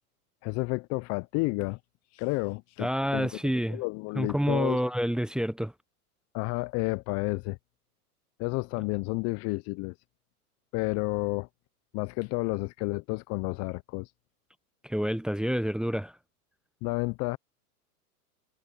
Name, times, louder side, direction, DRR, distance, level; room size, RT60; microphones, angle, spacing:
voice 1, 0.4-1.8 2.1-3.3 3.7-4.8 6.3-7.6 8.4-9.9 10.7-11.5 11.9-14.1 16.8-17.4, left 26 dB, 35° left, 0.7 m, -31 dB
voice 2, 2.8-3.8 4.2-5.7 14.8-16.1, equal, ahead, 0.9 m, -28 dB
hypercardioid pair, 110°, 45 cm